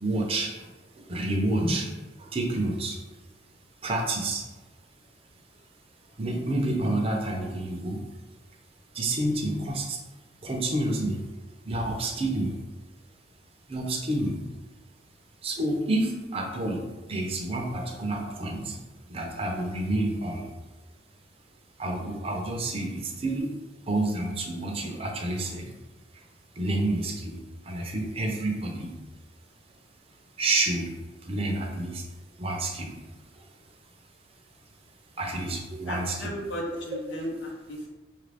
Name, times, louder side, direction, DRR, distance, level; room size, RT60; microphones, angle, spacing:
voice 1, 0.0-1.9 2.2-3.0 3.8-4.5 6.2-8.0 8.9-10.0 10.4-11.3 11.6-12.5 13.7-14.4 15.4-18.8 19.1-20.5 21.8-23.6 23.9-25.7 26.1-26.2 26.6-29.0 30.4-30.9 31.2-32.1 32.4-33.5 35.2-36.3 37.2-37.3, right 2 dB, 30° right, 1 dB, 0.6 m, -29 dB
voice 2, 35.9-37.9, equal, 85° left, -2 dB, 0.9 m, -35 dB
5.6 x 2.5 x 3.3 m, 1.2 s
head